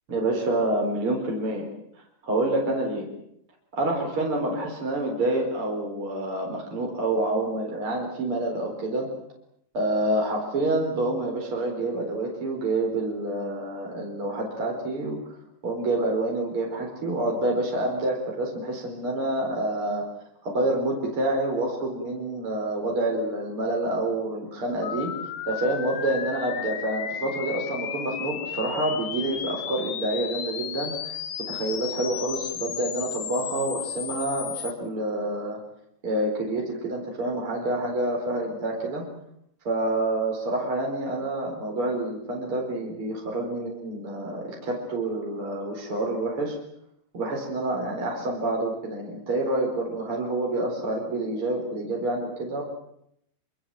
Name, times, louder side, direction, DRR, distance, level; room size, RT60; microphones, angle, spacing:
voice 1, 0.1-1.7 2.2-3.1 3.7-9.1 9.7-15.2 15.6-20.1 20.4-25.1 25.5-31.2 31.5-35.6 36.0-39.0 39.6-46.6 47.1-52.6, right 2 dB, 35° right, -1 dB, 5.0 m, -27 dB
sound 1, 24.8-34.7, left 9 dB, 60° left, 2.7 m, -34 dB
26.0 x 26.0 x 7.7 m, 0.75 s
omnidirectional pair, 4.5 m